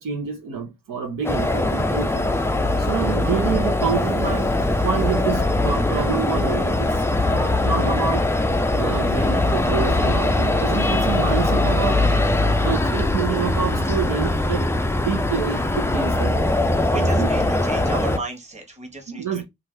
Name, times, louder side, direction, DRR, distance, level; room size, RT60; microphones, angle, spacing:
voice 1, 0.0-2.3 2.8-7.0 7.3-8.3 8.7-12.0 12.6-14.7 15.0-16.4 16.9-17.8 19.1-19.4, right 7 dB, 75° right, 0.9 m, -27 dB
sound 1, 1.2-18.2, left 2 dB, 10° left, 0.4 m, -21 dB
voice 2, 16.8-19.4, right 2 dB, 20° right, 1.2 m, -34 dB
2.7 x 2.4 x 3.2 m
cardioid pair, 70°, 33 cm